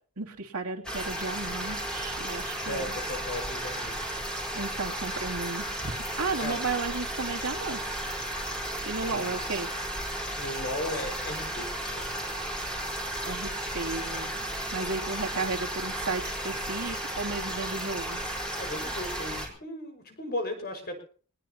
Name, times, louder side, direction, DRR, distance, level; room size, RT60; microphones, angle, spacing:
voice 1, 0.2-3.0 4.5-5.9 6.2-7.8 8.8-9.7 13.2-14.4 14.7-18.2, right 3 dB, 80° right, 2 dB, 2.9 m, -34 dB
sound 1, 0.8-19.5, right 1 dB, 5° left, 4.1 m, -34 dB
voice 2, 2.6-4.0 6.4-6.6 9.1-9.4 10.4-12.2 18.6-21.0, left 1 dB, 45° left, 5 dB, 5.4 m, -36 dB
22.5 x 19.0 x 2.9 m, 0.43 s
head